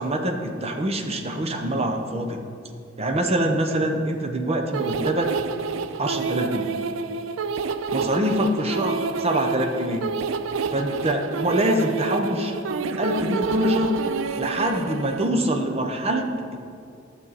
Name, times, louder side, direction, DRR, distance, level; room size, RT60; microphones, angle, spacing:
voice 1, 0.0-2.4 3.0-5.3 6.0-6.8 7.9-10.1 10.7-12.6 13.0-13.9 14.4-16.6, right 1 dB, 30° right, 3 dB, 0.8 m, -24 dB
sound 1, 4.7-15.3, right 5 dB, 80° right, 0.4 m, -28 dB
12.0 x 7.3 x 4.1 m, 2.4 s
head